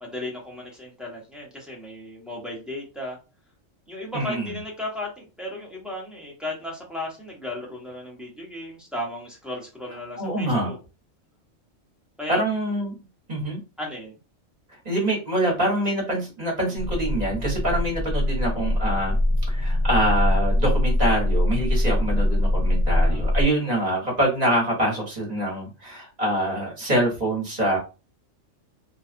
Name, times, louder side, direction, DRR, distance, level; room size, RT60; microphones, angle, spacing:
voice 1, 0.0-3.2 3.9-10.8 12.2-12.4 13.8-14.2 23.0-23.3, left 1 dB, ahead, -3 dB, 0.7 m, -35 dB
voice 2, 4.1-4.6 10.2-10.7 12.3-12.9 13.3-13.6 14.8-19.2 19.5-27.8, right 1 dB, 35° right, -3 dB, 1.2 m, -25 dB
sound 1, 16.8-23.4, left 1 dB, 55° right, 0.9 m, -22 dB
2.7 x 2.4 x 2.4 m, 0.31 s
omnidirectional pair, 1.3 m